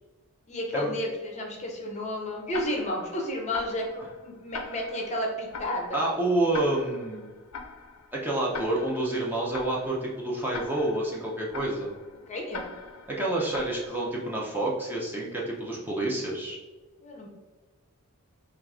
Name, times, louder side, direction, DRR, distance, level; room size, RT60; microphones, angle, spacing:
voice 1, 0.5-6.0 12.3-12.7 17.0-17.3, left 1 dB, 30° left, 1 dB, 0.6 m, -32 dB
Tick-tock, 2.5-14.4, left 4 dB, 75° left, 0.5 m, -43 dB
voice 2, 5.9-7.3 8.1-11.9 13.1-16.6, right 1 dB, 10° right, -4 dB, 0.6 m, -28 dB
4.5 x 2.4 x 3.5 m, 1.2 s
head